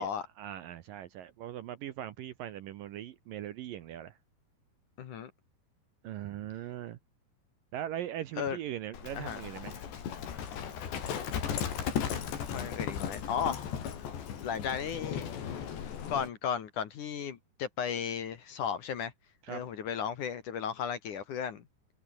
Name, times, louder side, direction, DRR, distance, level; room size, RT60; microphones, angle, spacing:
voice 1, 0.4-4.1 6.0-7.0 7.7-9.8 19.4-19.6, right 12 dB, 70° right, 2.4 m, -40 dB
voice 2, 5.0-5.3 8.4-8.6 9.1-9.4 12.4-13.7 14.4-15.3 16.1-19.1 19.5-21.6, left 7 dB, 55° left, 2.8 m, -35 dB
Livestock farm animals working animals, 8.9-16.3, left 8 dB, 80° left, 5.6 m, -36 dB
omnidirectional pair, 4.9 m